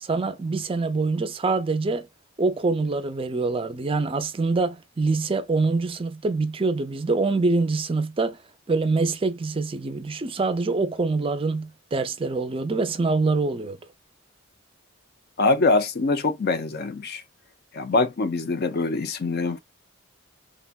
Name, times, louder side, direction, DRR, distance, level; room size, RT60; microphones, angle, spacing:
voice 1, 0.0-2.1 2.4-8.4 8.7-13.8, right 3 dB, 25° right, 0.4 m, -25 dB
voice 2, 15.4-17.2 17.7-19.6, left 3 dB, 50° left, 0.5 m, -23 dB
3.4 x 2.1 x 2.3 m
head